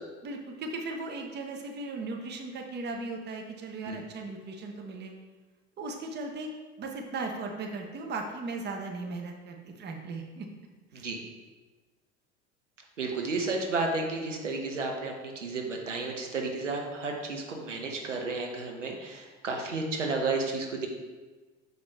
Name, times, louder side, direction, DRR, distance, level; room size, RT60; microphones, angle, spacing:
voice 1, 0.2-5.1 5.8-6.5 6.8-10.5 10.9-11.1, right 3 dB, 30° right, 3 dB, 0.9 m, -37 dB
voice 2, 13.0-20.9, right 3 dB, 80° right, 2 dB, 0.9 m, -32 dB
6.3 x 5.0 x 3.4 m, 1.3 s
figure-of-eight pair, 70°, 36 cm